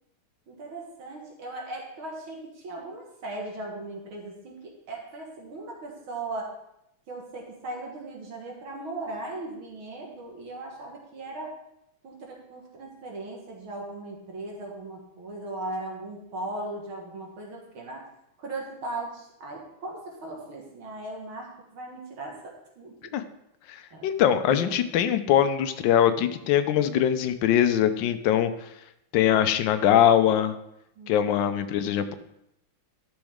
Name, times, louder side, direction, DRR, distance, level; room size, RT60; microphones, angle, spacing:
voice 1, 0.5-6.5 7.1-11.6 12.0-18.1 18.4-23.1 23.9-24.1 31.0-31.3, right 2 dB, 75° right, -1 dB, 2.4 m, -38 dB
voice 2, 23.7-28.5 29.1-30.5 31.1-32.1, left 10 dB, 75° left, 9 dB, 1.2 m, -22 dB
12.0 x 6.3 x 3.6 m, 0.81 s
omnidirectional pair, 2.3 m